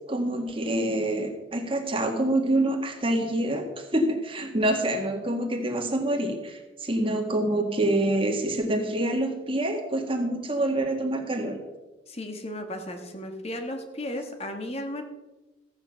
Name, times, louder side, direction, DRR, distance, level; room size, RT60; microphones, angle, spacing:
voice 1, 0.1-11.6, right 1 dB, 30° right, 2 dB, 1.8 m, -26 dB
voice 2, 12.1-15.0, left 1 dB, 35° left, 5 dB, 1.6 m, -35 dB
15.0 x 8.7 x 5.8 m, 1.1 s
head